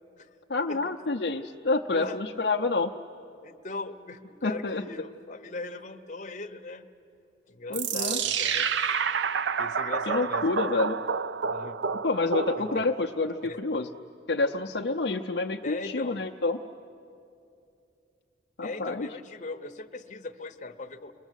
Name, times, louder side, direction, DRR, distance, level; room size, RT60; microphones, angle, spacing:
voice 1, 0.5-2.9 4.4-4.8 7.7-8.2 10.1-11.0 12.0-13.9 14.3-16.6 18.6-19.1, left 3 dB, 60° left, 1 dB, 0.6 m, -28 dB
voice 2, 3.4-6.8 7.5-8.7 9.2-10.5 11.4-11.8 12.6-12.9 13.4-13.6 15.6-16.2 18.6-21.1, left 3 dB, 40° left, 4 dB, 1.0 m, -39 dB
sound 1, 7.7-13.0, right 6 dB, 70° right, 0.5 m, -29 dB
29.5 x 21.0 x 8.2 m, 2.6 s
head